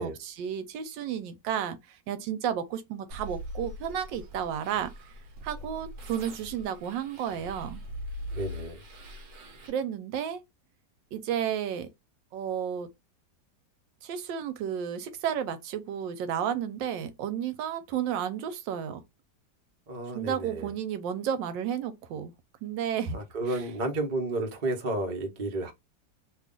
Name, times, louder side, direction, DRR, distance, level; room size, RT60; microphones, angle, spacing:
voice 1, 0.0-4.9 5.4-7.8 9.7-10.4 11.1-11.9 12.3-12.9 14.0-19.0 20.1-22.3 22.6-23.2 23.5-23.6, right 9 dB, 85° right, 1.3 m, -32 dB
sound 1, 3.1-9.7, equal, 65° right, 1.2 m, -42 dB
voice 2, 8.3-8.8 19.9-20.7 23.1-25.7, right 2 dB, 35° right, 0.8 m, -32 dB
3.0 x 2.4 x 3.7 m
omnidirectional pair, 2.0 m